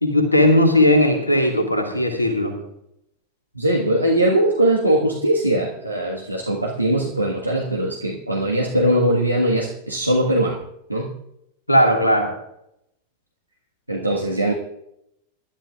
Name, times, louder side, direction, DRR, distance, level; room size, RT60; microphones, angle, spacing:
voice 1, 0.0-2.6 11.7-12.3, left 1 dB, 85° left, 4 dB, 1.8 m, -17 dB
voice 2, 3.5-10.6 10.9-11.1 13.9-14.5, right 1 dB, 85° right, -1 dB, 1.5 m, -20 dB
25.0 x 11.5 x 2.4 m, 0.80 s
figure-of-eight pair, 90°, 0 cm